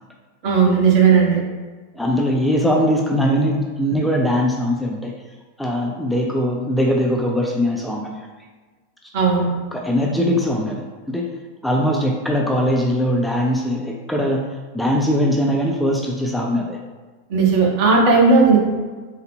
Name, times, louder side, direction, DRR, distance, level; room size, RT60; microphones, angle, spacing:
voice 1, 0.4-1.4 9.1-9.5 17.3-18.6, right 5 dB, 45° right, -1 dB, 0.8 m, -15 dB
voice 2, 1.9-5.1 5.6-8.3 9.7-11.3 11.6-14.5 14.7-16.8, equal, ahead, -1 dB, 0.3 m, -21 dB
3.8 x 2.1 x 3.4 m, 1.4 s
figure-of-eight pair, 90°, 0 cm